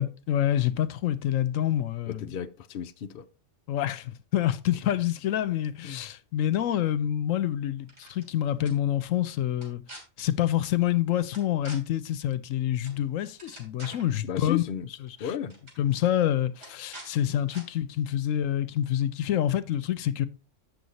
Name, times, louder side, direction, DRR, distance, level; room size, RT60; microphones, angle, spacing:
voice 1, 0.0-2.3 3.7-9.8 10.2-14.6 15.8-20.3, left 11 dB, 80° left, 1.0 m, -27 dB
voice 2, 2.1-3.3 5.8-6.0 14.2-14.9 15.2-15.6, left 8 dB, 60° left, 0.7 m, -34 dB
sound 1, 7.8-8.3 8.6-8.7 9.5-10.0 11.3-11.8 12.8-13.0 13.3-14.1 15.1-15.2 15.5-15.8 16.6-17.1 17.5-17.6, right 1 dB, 65° right, 3.8 m, -45 dB
7.9 x 6.8 x 4.0 m
omnidirectional pair, 1.3 m